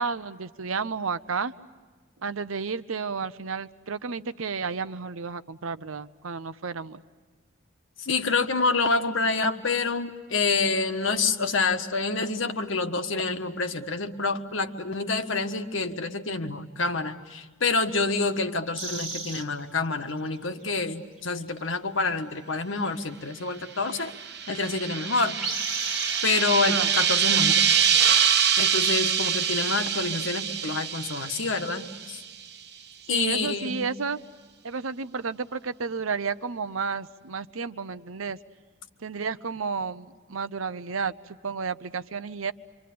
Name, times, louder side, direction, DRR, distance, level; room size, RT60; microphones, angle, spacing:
voice 1, 0.0-1.5 2.2-7.0 26.6-26.9 33.1-34.2 34.6-38.4 39.0-41.1 41.4-42.5, right 5 dB, 80° right, 13 dB, 0.8 m, -32 dB
voice 2, 8.0-24.1 24.5-25.4 26.2-27.5 28.6-32.2 33.1-33.8, left 3 dB, 70° left, 6 dB, 1.4 m, -27 dB
sound 1, 18.7-19.4 20.6-20.7 21.2-21.3 21.6-21.7 24.3-24.4 24.6-26.4, right 2 dB, 5° right, 1.8 m, -34 dB
sound 2, 23.9-32.2, right 8 dB, 50° right, 1.1 m, -25 dB
27.5 x 25.5 x 8.6 m, 1.4 s
head